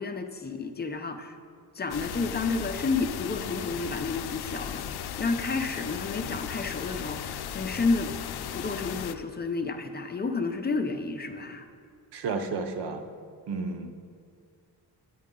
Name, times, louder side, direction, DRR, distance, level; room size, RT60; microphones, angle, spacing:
voice 1, 0.0-1.4 1.7-8.1 8.5-11.7, left 3 dB, 25° left, 6 dB, 0.5 m, -31 dB
sound 1, 1.9-9.2, left 10 dB, 75° left, 0.5 m, -36 dB
voice 2, 12.1-13.0 13.5-13.9, right 4 dB, 85° right, 6 dB, 0.8 m, -32 dB
9.5 x 9.3 x 3.7 m, 2.3 s
wide cardioid pair, 130°, 39 cm